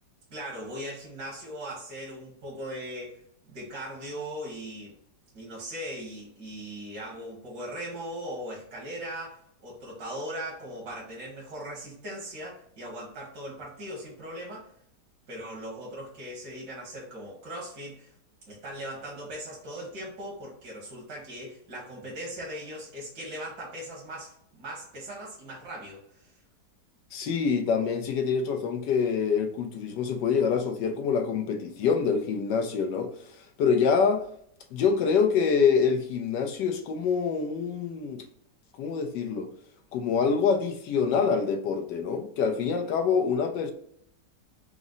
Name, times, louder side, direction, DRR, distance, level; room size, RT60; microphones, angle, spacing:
voice 1, 0.3-3.2 3.5-4.9 5.3-14.7 15.3-18.1 18.5-26.3, right 1 dB, 75° right, 1.9 m, -39 dB
voice 2, 27.1-34.3 34.7-38.3 38.8-39.5 39.9-43.7, left 6 dB, 80° left, 1.3 m, -26 dB
4.9 x 2.1 x 3.8 m
omnidirectional pair, 1.9 m